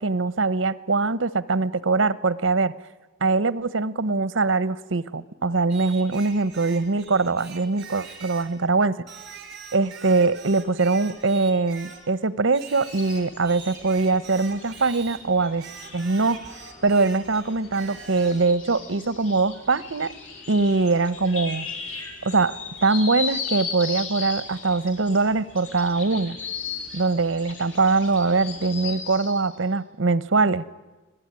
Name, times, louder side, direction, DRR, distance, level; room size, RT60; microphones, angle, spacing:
voice 1, 0.0-2.7 3.2-9.0 9.7-15.6 15.9-16.4 16.8-20.1 20.5-21.7 22.2-26.4 26.9-30.6, right 3 dB, 80° right, 17 dB, 0.9 m, -22 dB
Singing, 5.7-8.6 9.1-12.1 12.5-15.2 15.6-18.5, right 6 dB, 60° right, 4.1 m, -43 dB
sound 1, 12.9-29.5, left 5 dB, 85° left, 5.7 m, -37 dB
26.0 x 18.0 x 9.7 m, 1.2 s
head